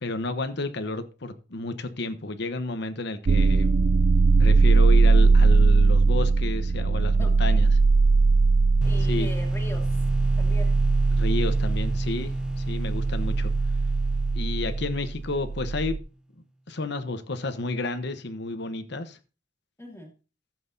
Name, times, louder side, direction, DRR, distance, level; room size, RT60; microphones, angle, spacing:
voice 1, 0.0-3.7 4.4-7.7 9.0-9.3 11.1-13.5 14.3-16.0 16.7-19.2, left 2 dB, 65° left, 1.0 m, -31 dB
sound 1, 3.3-16.0, right 4 dB, 55° right, 0.5 m, -20 dB
voice 2, 7.2-7.6 8.8-9.9 10.4-10.7 19.8-20.1, left 1 dB, 15° left, 2.5 m, -40 dB
sound 2, 8.8-15.6, right 1 dB, 5° right, 0.7 m, -32 dB
15.0 x 7.7 x 2.7 m
head